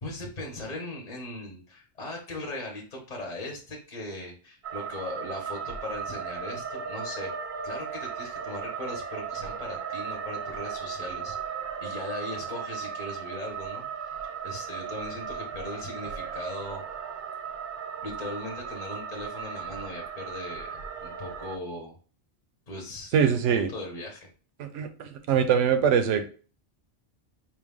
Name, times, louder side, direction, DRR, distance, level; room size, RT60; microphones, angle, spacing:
voice 1, 0.0-13.8 14.4-16.8 18.0-22.0 22.7-24.3, left 1 dB, 40° left, 1 dB, 0.9 m, -39 dB
sound 1, 4.6-21.6, right 6 dB, 60° right, 0.5 m, -36 dB
voice 2, 23.1-23.7 24.6-26.3, right 7 dB, 85° right, 8 dB, 1.0 m, -23 dB
4.6 x 2.2 x 3.5 m, 0.38 s
omnidirectional pair, 1.2 m